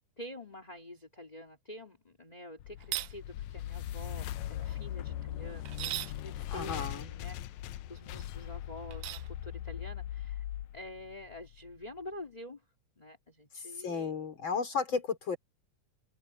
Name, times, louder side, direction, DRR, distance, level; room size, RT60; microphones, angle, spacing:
voice 1, 0.2-7.4 7.6-10.4 10.7-12.6 13.0-14.1 14.9-15.0, left 1 dB, 15° left, 2.5 m, -47 dB
sound 1, 2.6-11.8, left 12 dB, 75° left, 1.8 m, -40 dB
sound 2, 2.8-3.1 5.7-6.2 8.9-9.3, right 16 dB, 90° right, 1.4 m, -37 dB
voice 2, 6.5-7.1 13.8-15.4, left 5 dB, 35° left, 4.7 m, -33 dB
open air
omnidirectional pair, 3.6 m